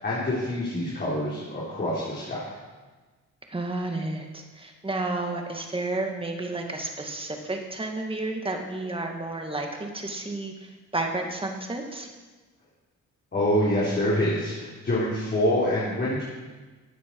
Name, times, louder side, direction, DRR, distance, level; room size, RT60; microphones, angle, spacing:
voice 1, 0.0-2.5 13.3-16.2, left 1 dB, 35° left, -7 dB, 3.7 m, -26 dB
voice 2, 3.5-12.1, right 2 dB, 20° right, 3 dB, 2.1 m, -31 dB
14.5 x 9.2 x 4.8 m, 1.3 s
cardioid pair, 90°, 30 cm